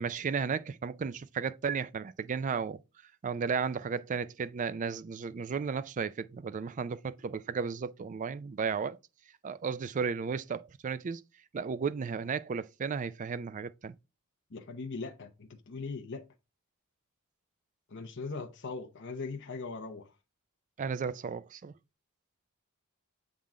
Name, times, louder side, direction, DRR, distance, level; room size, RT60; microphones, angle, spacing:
voice 1, 0.0-2.8 3.2-9.0 9.4-11.2 11.5-13.9 20.8-21.7, right 5 dB, 35° right, 0.3 m, -34 dB
voice 2, 14.5-16.3 17.9-20.1, left 4 dB, 55° left, 0.8 m, -40 dB
7.3 x 3.7 x 3.7 m
head